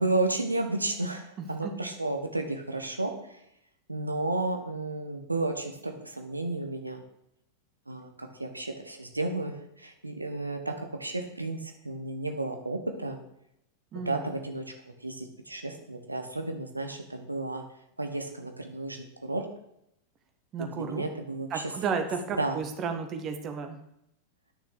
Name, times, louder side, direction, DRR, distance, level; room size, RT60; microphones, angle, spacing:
voice 1, 0.0-3.4 3.9-7.0 7.9-10.7 11.0-13.2 14.0-14.6 15.0-17.6 18.0-19.5 20.6-21.7 22.4-22.6, right 2 dB, 85° right, 5 dB, 1.4 m, -32 dB
voice 2, 13.9-14.3 20.5-21.0 21.5-23.8, right 5 dB, 30° right, 6 dB, 1.7 m, -33 dB
9.7 x 6.8 x 8.3 m, 0.78 s
figure-of-eight pair, 90°, 0 cm